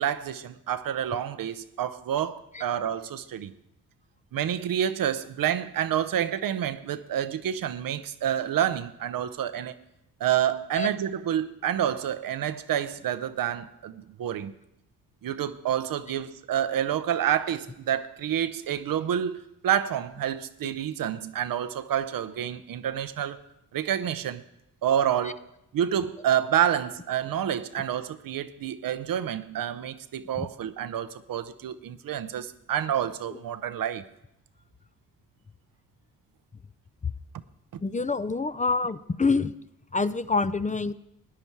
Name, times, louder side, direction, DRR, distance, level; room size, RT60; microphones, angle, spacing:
voice 1, 0.0-3.5 4.3-9.7 10.2-14.5 15.2-23.4 23.7-24.4 24.8-25.4 25.7-34.0, right 10 dB, 75° right, 0.7 m, -28 dB
voice 2, 37.8-39.5 39.9-40.9, left 4 dB, 20° left, 0.5 m, -26 dB
14.0 x 9.8 x 4.6 m
cardioid pair, 50°, 34 cm